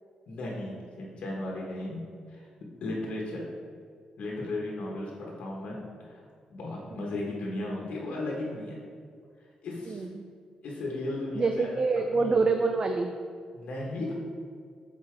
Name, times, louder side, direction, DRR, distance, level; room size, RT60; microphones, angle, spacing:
voice 1, 0.3-2.0 2.3-2.5 2.8-3.5 4.2-6.2 6.5-8.7 9.6-10.1 10.6-11.7 12.1-12.4 13.5-14.1, left 2 dB, 65° left, -3 dB, 1.1 m, -35 dB
voice 2, 9.9-10.3 11.4-13.1, right 4 dB, 35° right, 5 dB, 0.3 m, -26 dB
7.4 x 4.1 x 3.3 m, 2.1 s
cardioid pair, 105°, 2 cm